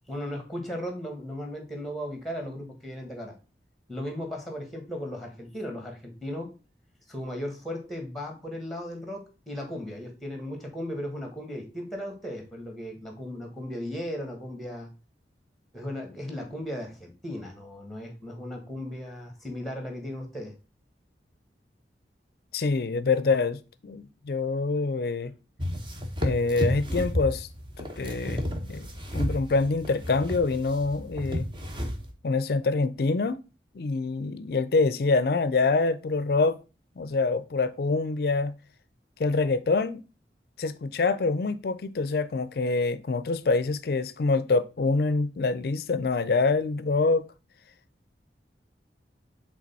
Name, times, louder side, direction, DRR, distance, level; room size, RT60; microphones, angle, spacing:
voice 1, 0.1-3.3 3.9-6.5 7.1-14.9 15.7-20.5, equal, ahead, 1.4 m, -36 dB
voice 2, 22.5-25.3 26.2-27.5 27.8-31.5 32.2-33.4 33.7-36.6 37.0-38.5 39.2-40.0 40.6-47.3, left 3 dB, 60° left, 0.4 m, -26 dB
sound 1, 25.6-32.1, equal, 25° right, 0.9 m, -32 dB
5.1 x 3.6 x 5.4 m
head